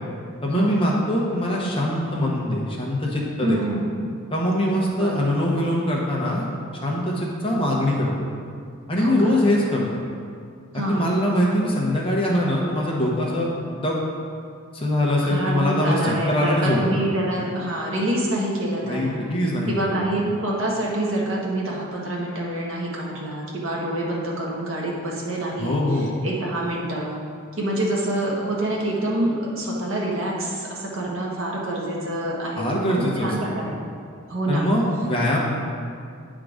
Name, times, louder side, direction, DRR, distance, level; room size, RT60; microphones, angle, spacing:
voice 1, 0.4-3.6 4.3-6.5 6.8-8.3 8.9-9.8 10.7-13.5 13.7-14.0 14.7-17.0 18.8-20.0 25.6-26.1 32.6-33.3 34.5-35.4, left 1 dB, 25° left, -3 dB, 1.0 m, -23 dB
voice 2, 3.4-3.9 4.9-5.2 9.0-9.4 10.7-11.1 15.2-19.2 19.7-27.2 27.6-33.8 34.3-34.7, right 1 dB, 65° right, -3 dB, 1.4 m, -26 dB
9.3 x 3.8 x 5.0 m, 2.3 s
head